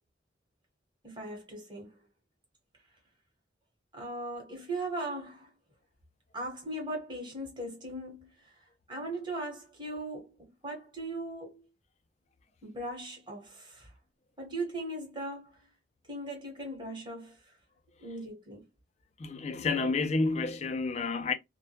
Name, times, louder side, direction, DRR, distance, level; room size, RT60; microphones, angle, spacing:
voice 1, 1.0-2.0 3.9-5.5 6.3-11.7 12.6-13.9 14.4-15.7 16.1-17.6 18.0-18.6, right 1 dB, 25° right, 1.0 m, -39 dB
voice 2, 19.2-21.3, left 3 dB, 35° left, 0.3 m, -30 dB
2.1 x 2.1 x 2.8 m
head